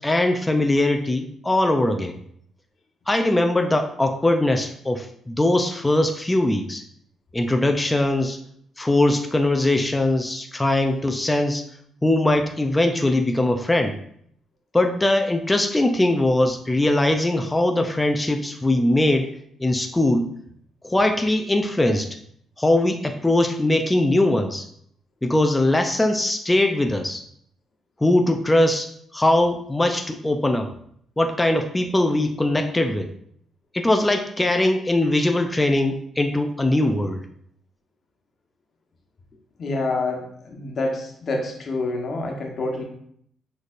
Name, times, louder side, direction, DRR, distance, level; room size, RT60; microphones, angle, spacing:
voice 1, 0.0-2.2 3.1-6.8 7.3-8.4 8.8-11.6 12.0-14.0 14.7-19.3 19.6-20.3 20.8-22.2 22.6-24.7 25.2-27.2 28.0-30.7 31.2-33.1 33.7-37.2, left 1 dB, 15° left, 5 dB, 0.4 m, -21 dB
voice 2, 39.6-42.8, left 2 dB, 50° left, 1 dB, 1.1 m, -27 dB
6.4 x 3.3 x 2.5 m, 0.66 s
cardioid pair, 90°, 0 cm